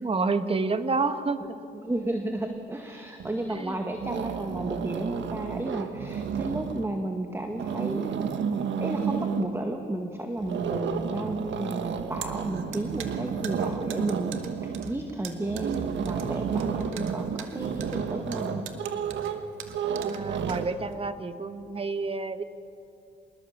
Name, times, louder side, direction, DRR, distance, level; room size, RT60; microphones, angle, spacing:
voice 1, 0.0-1.6 3.5-3.7 20.0-22.4, right 4 dB, 30° right, 10 dB, 1.4 m, -29 dB
voice 2, 1.7-8.2 8.8-14.3 14.6-18.7, right 1 dB, 15° right, 4 dB, 1.8 m, -33 dB
sound 1, 3.2-3.6 3.9-7.0 7.4-9.6 10.4-20.7, right 7 dB, 65° right, 1.5 m, -31 dB
sound 2, 11.9-21.1, right 9 dB, 90° right, 1.8 m, -43 dB
26.0 x 21.0 x 7.3 m, 2.6 s
cardioid pair, 90°, 20 cm